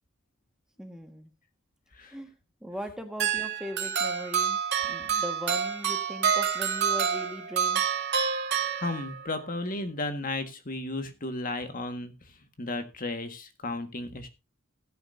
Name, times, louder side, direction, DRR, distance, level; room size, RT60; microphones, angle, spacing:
voice 1, 0.8-1.3 2.1-2.3 2.6-7.8, equal, 5° right, 5 dB, 1.6 m, -39 dB
sound 1, 3.2-9.3, right 7 dB, 55° right, 2.3 m, -28 dB
voice 2, 8.5-12.1 12.6-14.3, left 2 dB, 40° left, 8 dB, 1.6 m, -34 dB
17.0 x 10.0 x 2.7 m, 0.25 s
head